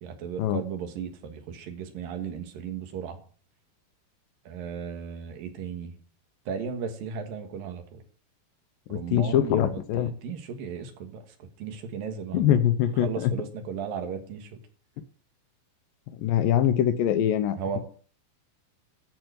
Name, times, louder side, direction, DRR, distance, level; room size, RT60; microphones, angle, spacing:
voice 1, 0.0-3.2 4.5-5.9 6.5-8.0 8.9-11.2 11.6-12.5 13.0-14.5 17.6-17.8, right 7 dB, 65° right, 6 dB, 3.0 m, -35 dB
voice 2, 8.9-10.1 12.3-13.3 16.2-17.8, left 10 dB, 75° left, 10 dB, 2.2 m, -23 dB
13.5 x 4.7 x 7.9 m, 0.43 s
omnidirectional pair, 4.6 m